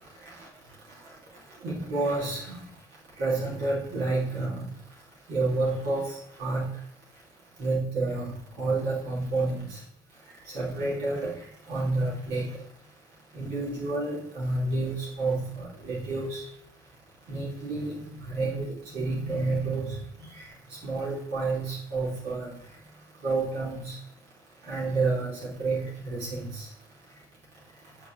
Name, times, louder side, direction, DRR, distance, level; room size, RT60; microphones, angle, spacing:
voice 1, 1.6-2.6 3.2-4.6 5.3-6.1 6.4-6.7 7.6-9.8 10.5-11.3 11.7-12.5 13.3-16.4 17.3-17.9 18.2-18.7 18.9-20.0 20.8-22.5 23.2-23.9 24.7-25.3 25.6-26.6, right 3 dB, 80° right, -6 dB, 2.6 m, -29 dB
8.3 x 4.6 x 3.1 m, 0.69 s
cardioid pair, 110°, 17 cm